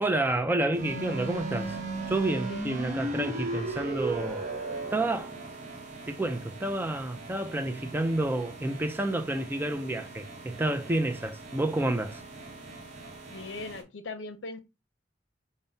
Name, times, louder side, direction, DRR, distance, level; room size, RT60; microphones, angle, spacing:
voice 1, 0.0-1.8 2.1-4.5 4.9-5.3 6.1-12.2, right 2 dB, 10° right, 0.3 m, -29 dB
sound 1, 0.7-13.8, right 2 dB, 40° right, 0.9 m, -38 dB
voice 2, 13.3-14.6, left 3 dB, 75° left, 0.6 m, -39 dB
5.2 x 2.1 x 2.7 m
head